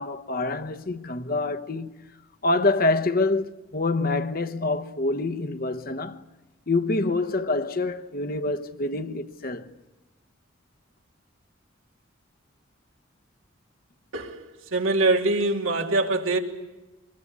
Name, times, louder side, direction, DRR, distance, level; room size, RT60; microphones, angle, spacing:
voice 1, 0.0-2.0 2.4-6.2 6.7-9.7, left 2 dB, 45° left, 1.0 m, -26 dB
voice 2, 14.7-16.4, right 2 dB, 90° right, 3.0 m, -23 dB
26.0 x 21.5 x 8.4 m
head